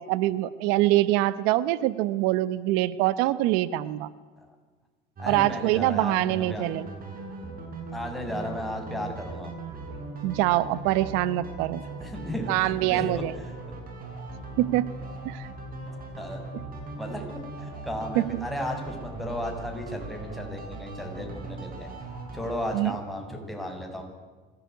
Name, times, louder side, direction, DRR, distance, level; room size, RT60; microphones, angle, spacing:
voice 1, 0.0-4.1 5.3-6.9 10.2-11.8 12.5-13.3 14.6-14.9 15.2-15.5 16.5-16.6 18.1-18.5 22.7-22.9, right 16 dB, 85° right, 16 dB, 1.0 m, -24 dB
voice 2, 5.2-6.7 7.9-9.5 12.0-13.3 16.2-16.4 17.0-21.9 22.3-24.0, left 1 dB, ahead, 1 dB, 7.3 m, -34 dB
sound 1, 5.2-22.8, right 3 dB, 40° right, 7.8 m, -39 dB
25.5 x 18.0 x 9.4 m, 1.4 s
supercardioid pair, 100°, 21 cm